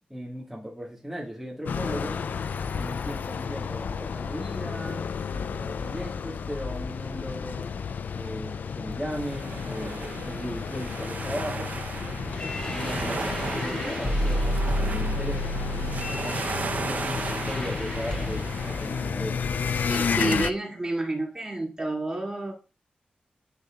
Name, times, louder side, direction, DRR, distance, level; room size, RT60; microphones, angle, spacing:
voice 1, 0.1-2.2 2.7-7.7 8.1-11.7 12.7-16.4 16.8-19.4, equal, 5° right, -4 dB, 1.8 m, -37 dB
sound 1, 1.7-20.5, left 6 dB, 75° left, 0.4 m, -32 dB
sound 2, 9.1-19.1, right 4 dB, 60° right, 0.8 m, -36 dB
sound 3, 12.3-18.7, equal, 30° left, 3.1 m, -31 dB
voice 2, 19.9-22.5, right 2 dB, 25° right, -1 dB, 2.5 m, -29 dB
12.0 x 4.1 x 2.4 m, 0.32 s
cardioid pair, 75°, 3 cm